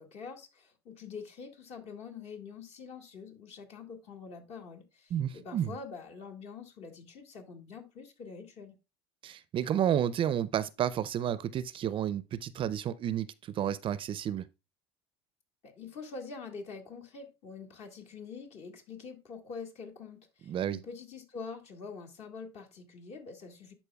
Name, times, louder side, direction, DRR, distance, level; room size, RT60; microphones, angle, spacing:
voice 1, 0.0-8.8 15.6-23.7, left 5 dB, 50° left, 1.8 m, -45 dB
voice 2, 5.1-5.8 9.2-14.4 20.5-20.8, right 10 dB, 40° right, 0.4 m, -31 dB
11.0 x 4.4 x 2.3 m
supercardioid pair, 95°, 14 cm